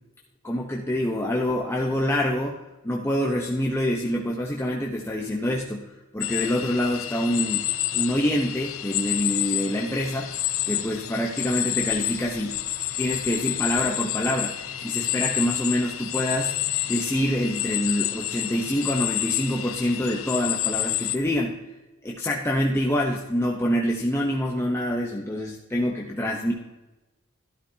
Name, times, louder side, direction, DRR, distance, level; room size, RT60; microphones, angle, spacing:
voice 1, 0.4-2.6 2.8-10.3 10.6-12.6 13.0-14.6 14.8-16.5 16.9-21.6 22.0-26.5, equal, 10° left, -1 dB, 0.9 m, -26 dB
sound 1, 6.2-21.2, left 13 dB, 80° left, 0.6 m, -29 dB
13.0 x 12.0 x 2.8 m, 1.1 s
head